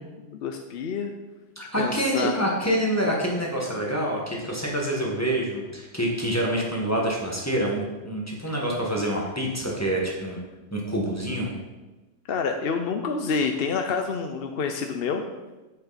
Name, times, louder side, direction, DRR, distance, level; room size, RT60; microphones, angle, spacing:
voice 1, 0.3-1.1 1.8-2.4 12.3-15.2, left 5 dB, 55° left, 5 dB, 0.7 m, -27 dB
voice 2, 1.5-10.4 10.7-11.5, right 1 dB, 10° left, -3 dB, 1.5 m, -26 dB
8.9 x 6.6 x 4.1 m, 1.1 s
omnidirectional pair, 1.4 m